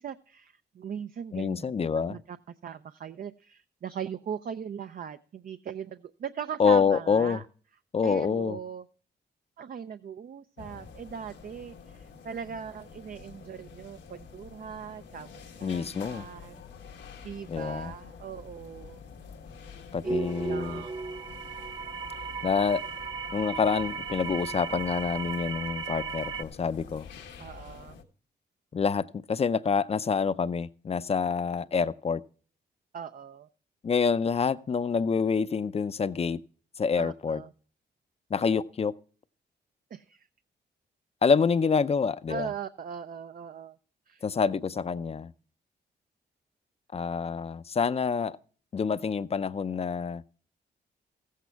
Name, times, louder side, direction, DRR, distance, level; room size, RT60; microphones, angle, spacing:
voice 1, 0.0-2.4 2.6-7.4 8.0-8.9 9.6-16.6 17.2-19.0 20.0-21.1 27.4-28.0 32.9-33.5 37.0-37.5 39.9-40.3 42.3-43.8 44.1-44.2, right 8 dB, 50° right, 0.5 m, -40 dB
voice 2, 1.3-2.2 6.6-7.4 7.9-8.6 15.6-16.2 17.5-17.9 19.9-20.8 22.4-22.8 23.3-27.1 28.7-32.2 33.8-36.4 36.8-37.4 38.3-38.9 41.2-42.5 44.2-45.3 46.9-48.4 48.7-50.2, left 5 dB, 35° left, 0.5 m, -27 dB
sound 1, 10.6-28.0, left 6 dB, 90° left, 1.5 m, -48 dB
sound 2, 20.0-26.4, right 5 dB, 25° right, 0.8 m, -35 dB
15.0 x 8.4 x 4.6 m
cardioid pair, 105°, 18 cm